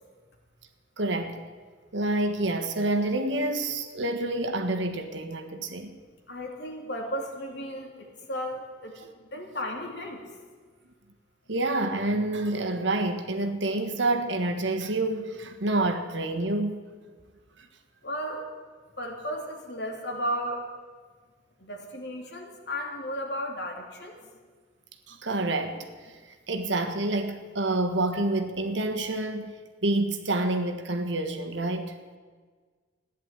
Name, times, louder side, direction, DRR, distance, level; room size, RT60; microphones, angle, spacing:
voice 1, 1.0-1.4 1.9-5.9 11.5-16.8 17.6-17.7 25.1-26.1 26.5-29.6 29.8-31.9, right 2 dB, 70° right, 1.5 m, -28 dB
voice 2, 6.3-8.9 9.2-10.2 18.0-18.4 19.0-20.6 21.6-24.2, equal, 60° left, 2.8 m, -34 dB
15.0 x 10.5 x 9.0 m
head